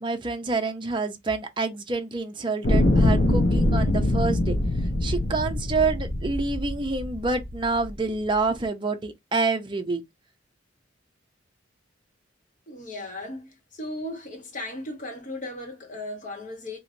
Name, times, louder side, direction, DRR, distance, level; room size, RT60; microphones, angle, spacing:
voice 1, 0.0-4.6 5.0-10.0, right 3 dB, 25° right, 0.6 m, -27 dB
sound 1, 2.6-7.9 8.6-8.7, left 1 dB, 70° left, 0.8 m, -23 dB
voice 2, 12.7-16.8, left 1 dB, 40° left, 1.1 m, -36 dB
3.1 x 2.8 x 2.6 m
head